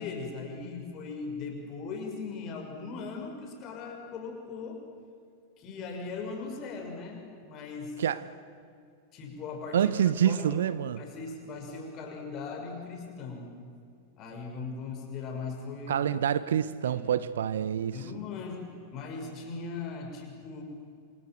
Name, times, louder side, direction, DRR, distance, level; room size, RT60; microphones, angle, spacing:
voice 1, 0.0-4.8 5.6-7.9 9.1-10.5 11.0-13.6 14.2-16.1 16.8-17.2 17.9-18.7 18.9-20.6, left 4 dB, 35° left, 6.3 m, -39 dB
voice 2, 9.7-11.0 15.9-18.0, right 9 dB, 65° right, 0.9 m, -27 dB
27.0 x 27.0 x 8.0 m
figure-of-eight pair, 90°, 0 cm